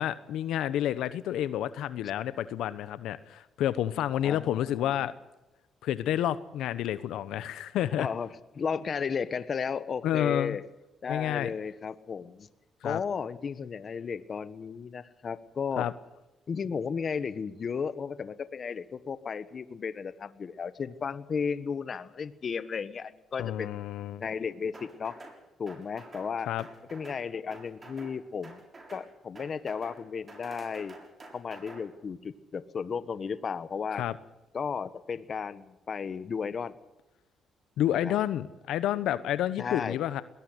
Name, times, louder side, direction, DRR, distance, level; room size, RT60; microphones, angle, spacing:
voice 1, 0.0-5.1 5.8-8.1 10.0-10.6 11.1-11.5 12.8-13.0 15.8-15.9 23.4-24.2 26.4-26.6 33.9-34.1 37.8-40.2, left 11 dB, 85° left, 14 dB, 1.0 m, -29 dB
voice 2, 4.2-4.9 8.0-8.3 8.5-10.6 11.0-12.5 12.8-15.9 16.5-23.8 24.2-25.2 25.6-26.5 26.9-28.6 28.9-30.9 31.3-34.0 34.5-36.7 38.0-38.1 39.6-40.0, left 6 dB, 45° left, 14 dB, 1.3 m, -34 dB
sound 1, 24.7-25.4 25.7-26.3 26.6-27.2 27.5-28.1 28.4-29.1 29.4-30.0 30.3-31.8, right 2 dB, 30° right, 6.8 m, -48 dB
21.0 x 18.0 x 8.1 m, 1.0 s
cardioid pair, 90°, 0 cm